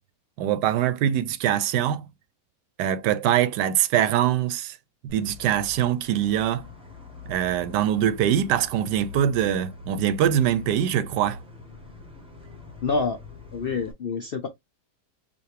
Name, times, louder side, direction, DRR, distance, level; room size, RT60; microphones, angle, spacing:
voice 1, 0.4-2.1 2.8-4.8 5.0-6.7 7.3-11.4, right 10 dB, 85° right, 1.2 m, -23 dB
sound 1, 5.1-13.9, left 4 dB, 5° right, 0.9 m, -43 dB
voice 2, 12.8-13.2 13.5-14.5, left 4 dB, 80° left, 0.5 m, -27 dB
5.1 x 2.6 x 3.2 m
omnidirectional pair, 1.8 m